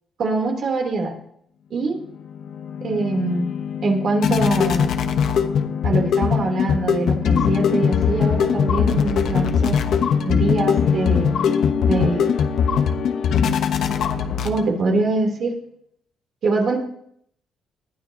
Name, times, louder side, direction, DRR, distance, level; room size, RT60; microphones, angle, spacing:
voice 1, 0.2-1.2 1.7-2.0 2.8-3.5 3.8-4.9 5.8-9.8 10.3-11.4 11.8-12.3 14.4-15.5 16.4-16.8, right 3 dB, 60° right, 1 dB, 3.4 m, -23 dB
sound 1, 2.1-14.9, left 7 dB, 70° left, 1.1 m, -21 dB
20.5 x 12.0 x 3.0 m, 0.70 s
cardioid pair, 90°, 0 cm